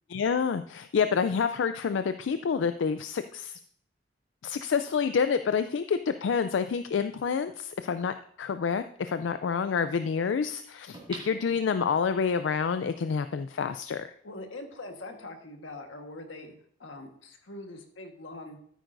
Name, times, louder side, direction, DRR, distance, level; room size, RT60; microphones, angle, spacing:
voice 1, 0.1-3.6 4.4-14.1, left 6 dB, 70° left, 10 dB, 0.4 m, -28 dB
sound 1, 10.9-12.3 12.8-12.9, right 3 dB, 25° right, 2.2 m, -45 dB
voice 2, 14.2-16.5 16.8-18.6, left 2 dB, 90° left, 4 dB, 1.4 m, -43 dB
13.0 x 9.1 x 2.6 m, 0.62 s
head